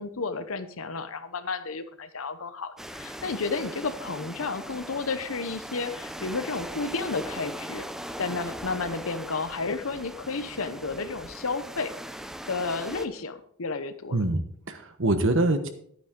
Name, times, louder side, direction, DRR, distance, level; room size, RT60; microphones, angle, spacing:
voice 1, 0.0-7.9 8.2-11.9 12.5-14.2, left 4 dB, 75° left, 11 dB, 0.9 m, -32 dB
sound 1, 2.8-13.1, equal, ahead, 0.5 m, -40 dB
voice 2, 14.1-15.7, right 2 dB, 65° right, 9 dB, 1.2 m, -25 dB
11.5 x 9.4 x 3.8 m, 0.65 s
head